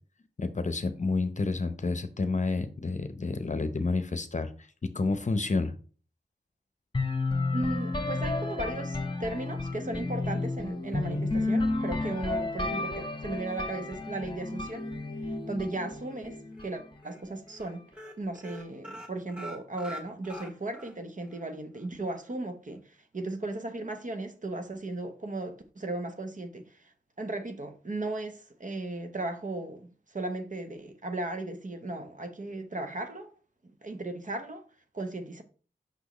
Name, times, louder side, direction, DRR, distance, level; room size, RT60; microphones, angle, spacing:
voice 1, 0.4-4.5 4.9-5.7, left 3 dB, 45° left, 0.8 m, -29 dB
sound 1, 6.9-16.8, left 2 dB, 25° left, 1.1 m, -32 dB
voice 2, 7.5-14.9 15.5-17.8 18.2-33.3 33.6-34.6 34.9-35.4, right 2 dB, 45° right, 0.9 m, -36 dB
sound 2, 16.1-16.7 17.0-17.2 17.5-17.7 17.9-21.0 21.3-21.4 21.8-21.9, equal, 5° right, 1.6 m, -44 dB
6.2 x 5.7 x 3.0 m
wide cardioid pair, 70°, 18 cm